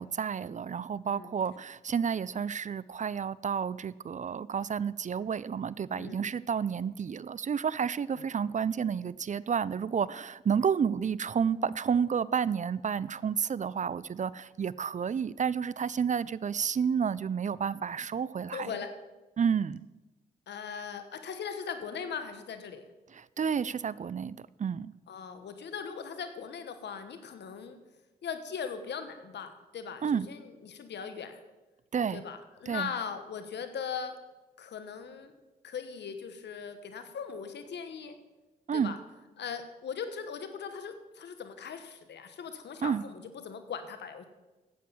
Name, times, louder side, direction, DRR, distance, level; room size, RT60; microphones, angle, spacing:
voice 1, 0.0-18.7 19.4-19.9 23.1-24.9 30.0-30.3 31.9-32.2 32.7-32.9 38.7-38.9 42.8-43.0, right 7 dB, 45° right, 20 dB, 0.4 m, -30 dB
voice 2, 5.9-6.2 8.2-8.3 18.5-18.9 20.5-22.8 25.1-27.8 28.2-31.4 32.1-34.2 34.6-35.3 35.6-38.2 38.7-39.0 39.4-44.2, left 6 dB, 75° left, 9 dB, 1.2 m, -39 dB
9.2 x 8.2 x 7.2 m, 1.1 s
supercardioid pair, 40°, 18 cm